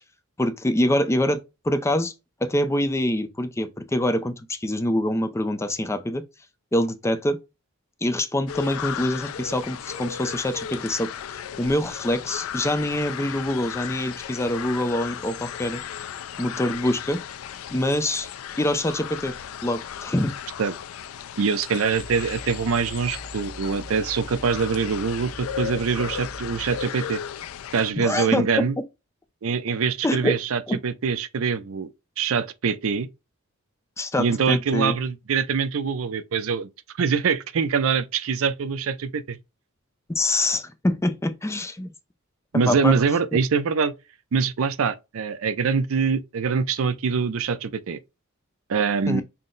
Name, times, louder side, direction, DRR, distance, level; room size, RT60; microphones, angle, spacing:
voice 1, 0.4-1.4 1.6-2.1 2.4-6.2 6.7-7.4 8.0-15.8 16.4-17.2 17.7-18.3 18.6-19.3 19.6-20.3 28.0-28.6 30.0-30.4 30.7-30.8 34.0-35.0 40.1-41.9 42.5-43.0 49.1-49.2, left 1 dB, 15° left, 0.4 m, -25 dB
sound 1, 8.5-27.9, left 9 dB, 75° left, 0.4 m, -35 dB
voice 2, 21.4-27.2 27.7-28.8 29.4-31.9 32.2-33.1 34.2-36.7 37.0-39.4 42.5-43.9 44.3-48.0 48.7-49.2, right 5 dB, 70° right, 0.5 m, -24 dB
sound 2, 21.9-26.8, right 1 dB, 50° left, 0.8 m, -41 dB
5.7 x 2.0 x 3.8 m
head